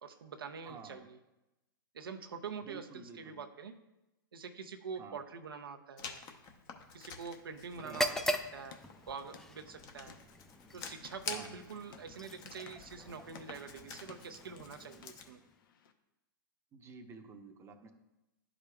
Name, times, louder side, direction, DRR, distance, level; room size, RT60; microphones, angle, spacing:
voice 1, 0.0-1.2 1.9-3.7 4.3-6.2 6.9-10.1 10.7-15.4, right 6 dB, 85° right, 5 dB, 0.6 m, -45 dB
voice 2, 0.6-1.1 2.7-3.4 4.9-5.2 7.8-8.0 11.3-11.5 16.7-17.9, right 4 dB, 25° right, 4 dB, 0.7 m, -51 dB
Writing, 6.0-15.3, left 6 dB, 35° left, 0.8 m, -49 dB
sound 1, 7.8-15.6, equal, 5° left, 0.3 m, -41 dB
sound 2, 8.5-15.9, left 7 dB, 70° left, 0.7 m, -60 dB
11.0 x 4.9 x 2.3 m, 0.96 s
hypercardioid pair, 115°, 12 cm